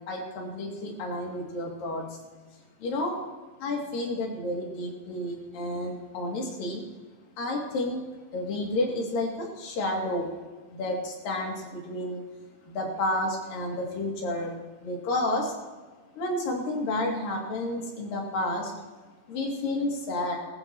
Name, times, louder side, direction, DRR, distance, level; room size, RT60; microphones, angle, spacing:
voice 1, 0.1-2.1 2.8-3.2 3.6-6.8 7.4-8.0 8.3-10.3 10.7-12.2 12.7-14.5 14.8-15.5 16.2-18.7 19.3-20.4, left 1 dB, 70° left, -1 dB, 4.2 m, -30 dB
20.0 x 15.0 x 3.0 m, 1.3 s
omnidirectional pair, 4.2 m